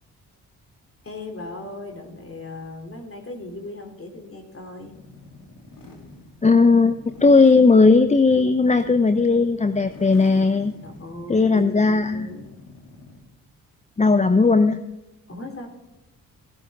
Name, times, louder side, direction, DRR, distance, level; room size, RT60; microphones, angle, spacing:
voice 1, 1.0-4.9 10.8-12.5 15.3-15.7, left 2 dB, 35° left, 4 dB, 3.1 m, -37 dB
sound 1, 4.8-13.3, left 2 dB, 55° left, 3.2 m, -46 dB
voice 2, 6.4-10.7 11.3-12.3 14.0-14.8, left 4 dB, 20° left, 11 dB, 0.7 m, -17 dB
17.0 x 12.0 x 3.6 m, 1.0 s
hypercardioid pair, 45°, 39 cm